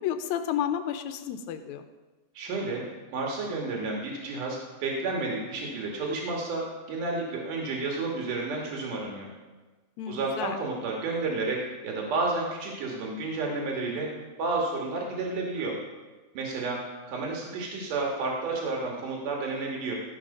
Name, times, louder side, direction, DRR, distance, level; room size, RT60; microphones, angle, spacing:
voice 1, 0.0-1.9 10.0-10.6, left 9 dB, 80° left, 9 dB, 1.8 m, -31 dB
voice 2, 2.3-2.8 3.1-9.3 10.1-14.1 14.4-15.8 16.3-16.8 17.1-19.9, right 3 dB, 85° right, -1 dB, 3.1 m, -31 dB
13.5 x 6.3 x 5.3 m, 1.2 s
omnidirectional pair, 3.5 m